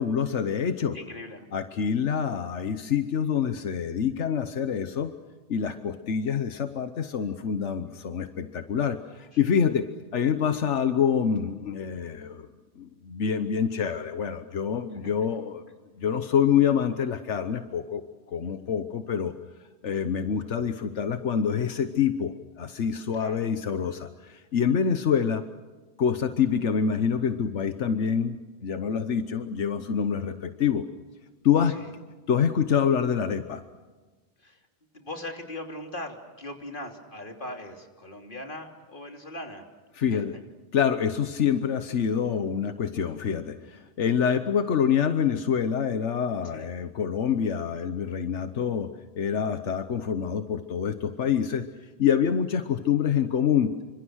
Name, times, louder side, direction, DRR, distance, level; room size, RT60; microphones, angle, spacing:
voice 1, 0.0-1.0 1.5-5.1 5.5-9.8 10.1-12.5 12.8-15.6 16.0-18.0 18.3-19.3 19.8-25.4 26.0-30.8 31.4-31.8 32.3-33.6 40.0-40.3 40.7-48.9 49.2-51.6 52.0-53.7, left 7 dB, 85° left, 9 dB, 1.3 m, -26 dB
voice 2, 0.9-1.4 9.3-9.5 14.9-15.0 18.4-18.7 23.2-23.5 31.7-31.9 34.4-34.7 34.9-39.6 40.1-40.2 46.5-46.7, left 1 dB, 45° left, 3 dB, 3.3 m, -40 dB
28.0 x 25.5 x 6.4 m, 1.3 s
omnidirectional pair, 1.2 m